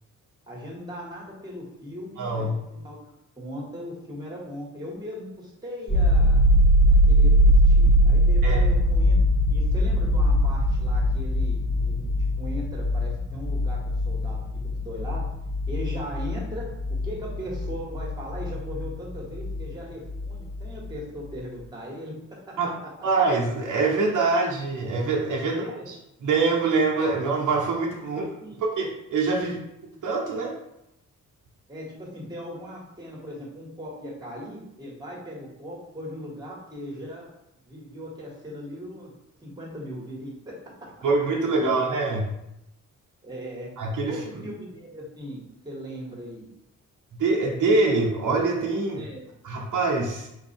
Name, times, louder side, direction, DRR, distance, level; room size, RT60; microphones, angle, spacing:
voice 1, 0.5-3.1 3.4-6.4 7.1-9.2 9.5-13.8 14.0-15.3 15.7-22.9 25.4-25.9 28.1-28.6 29.4-29.5 31.7-37.3 37.6-39.1 39.4-40.9 41.6-41.8 43.2-43.7 44.1-46.5 48.9-49.2, equal, 10° right, -3 dB, 1.6 m, -38 dB
voice 2, 2.2-2.5 8.4-8.6 22.6-22.7 23.0-25.9 26.2-28.2 28.6-29.6 30.0-30.5 41.0-42.3 43.8-44.2 47.2-49.1 49.4-50.3, right 3 dB, 70° right, -2 dB, 1.0 m, -24 dB
sound 1, 5.9-19.7 20.0-21.0, equal, 10° left, 0.7 m, -21 dB
4.2 x 2.7 x 4.3 m, 0.85 s
cardioid pair, 100°, 32 cm